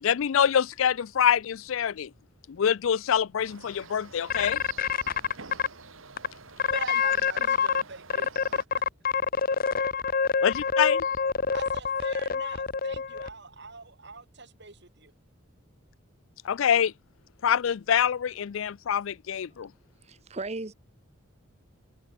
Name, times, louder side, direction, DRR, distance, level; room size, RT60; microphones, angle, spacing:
voice 1, 0.0-2.1 2.5-4.6 10.4-11.0 16.4-16.9 17.4-19.7, left 8 dB, 70° left, 0.4 m, -25 dB
sound 1, 3.4-8.7, right 4 dB, 75° right, 2.6 m, -49 dB
sound 2, 4.3-5.7 6.2-6.3 6.6-7.8 8.1-13.3, left 6 dB, 45° left, 0.7 m, -26 dB
voice 2, 6.7-8.8 9.6-9.9 11.5-15.1, right 3 dB, 55° right, 4.1 m, -42 dB
voice 3, 20.0-20.7, right 3 dB, 30° right, 0.9 m, -36 dB
head